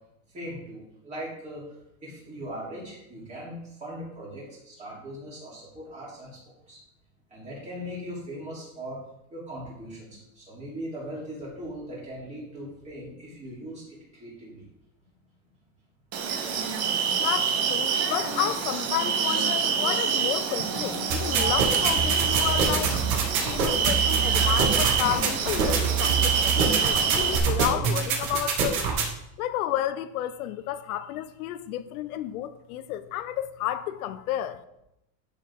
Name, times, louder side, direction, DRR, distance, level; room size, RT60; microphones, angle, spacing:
voice 1, 0.3-1.6 2.0-6.8 7.3-9.0 9.3-14.6, equal, 15° right, 3.5 m, -39 dB
sound 1, 16.1-27.4, right 6 dB, 35° right, 1.2 m, -26 dB
voice 2, 17.2-23.0 23.4-28.9 29.4-34.6, left 12 dB, 85° left, 0.9 m, -31 dB
sound 2, 21.1-29.1, right 6 dB, 85° right, 2.5 m, -25 dB
11.5 x 6.6 x 3.7 m
supercardioid pair, 175°, 42 cm